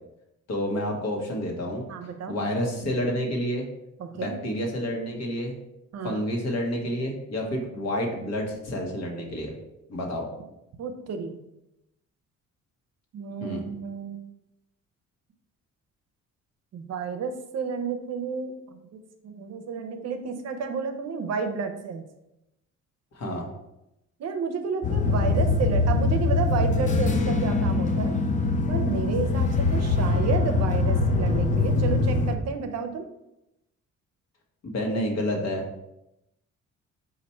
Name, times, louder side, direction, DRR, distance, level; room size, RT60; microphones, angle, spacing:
voice 1, 0.5-1.8 2.3-3.6 4.1-5.5 6.0-9.5 9.9-10.3 13.4-13.7 23.1-23.5 34.6-35.6, equal, 60° left, 1 dB, 1.1 m, -29 dB
voice 2, 1.9-2.4 4.0-4.4 5.9-6.2 10.8-11.4 13.1-14.2 16.7-18.5 18.9-22.0 24.2-28.2 28.7-33.1, right 5 dB, 60° right, 6 dB, 0.6 m, -31 dB
sound 1, 24.8-32.4, left 3 dB, 25° left, 0.4 m, -23 dB
4.1 x 2.5 x 4.3 m, 0.88 s
cardioid pair, 90°, 30 cm